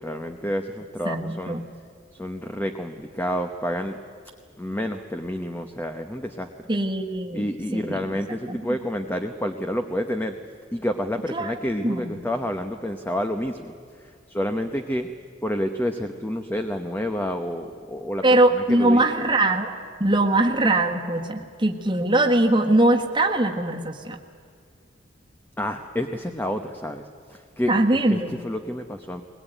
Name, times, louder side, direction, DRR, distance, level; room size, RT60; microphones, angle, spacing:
voice 1, 0.0-1.6 2.1-4.0 4.6-6.5 7.3-10.4 10.7-13.7 14.0-15.1 15.4-19.1 25.6-27.0 27.3-29.2, equal, 10° left, 6 dB, 0.9 m, -29 dB
voice 2, 1.0-1.6 6.7-7.5 7.7-8.0 8.5-8.6 11.3-11.5 11.8-12.1 18.2-19.7 20.0-24.2 27.7-28.4, right 2 dB, 25° right, 0 dB, 1.5 m, -21 dB
21.0 x 20.5 x 9.1 m, 2.1 s
head